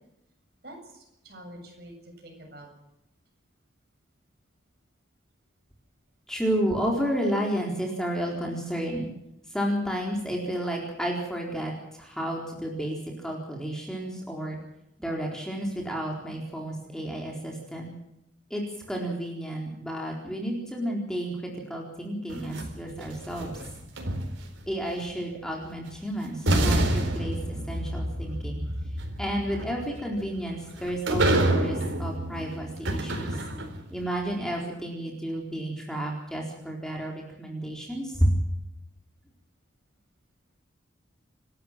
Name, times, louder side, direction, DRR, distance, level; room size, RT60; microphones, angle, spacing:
voice 1, 0.6-2.7, right 1 dB, 55° right, 2 dB, 7.7 m, -47 dB
voice 2, 6.3-9.1 9.5-14.6 15.0-17.9 18.5-23.6 24.7-28.7 29.2-33.4 33.9-38.4, equal, 5° left, -1 dB, 4.0 m, -31 dB
sound 1, 22.3-24.7 25.9-26.0 26.5-33.9, right 1 dB, 90° right, 4.2 m, -28 dB
28.5 x 13.0 x 7.5 m, 0.85 s
head